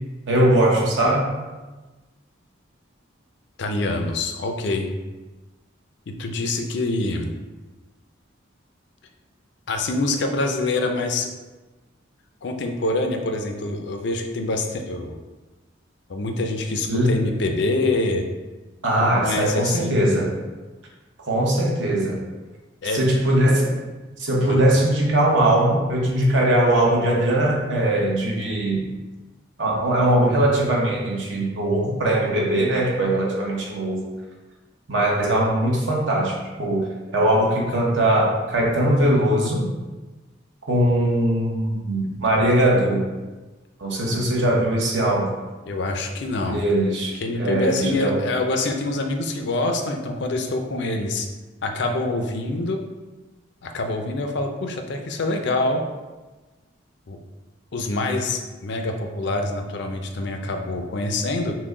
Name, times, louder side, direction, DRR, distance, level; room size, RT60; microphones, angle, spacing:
voice 1, 0.3-1.3 16.9-17.2 18.8-20.3 21.3-22.2 22.9-23.7 24.2-28.8 29.6-34.0 34.9-39.6 40.7-43.0 43.8-45.3 46.5-48.2, right 1 dB, 70° right, -2 dB, 1.0 m, -20 dB
voice 2, 3.6-4.9 6.1-7.3 9.7-11.3 12.4-15.2 16.1-18.3 19.2-20.2 22.8-23.1 24.4-24.6 44.0-44.3 45.7-46.6 47.2-51.3 51.6-52.8 53.6-55.8 57.1-57.2 57.7-61.6, left 2 dB, 60° left, 4 dB, 0.5 m, -25 dB
5.9 x 2.2 x 3.7 m, 1.2 s
head